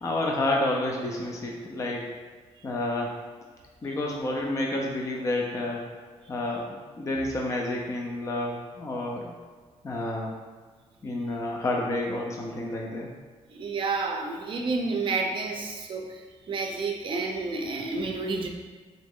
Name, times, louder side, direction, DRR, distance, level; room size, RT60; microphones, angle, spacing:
voice 1, 0.0-2.2 2.6-3.2 3.8-5.9 6.3-9.3 9.8-10.3 11.0-13.1, left 1 dB, 25° left, -1 dB, 0.4 m, -29 dB
voice 2, 13.5-16.2 16.5-18.5, right 3 dB, 45° right, 2 dB, 0.5 m, -30 dB
3.9 x 3.0 x 3.6 m, 1.5 s
wide cardioid pair, 170°, 12 cm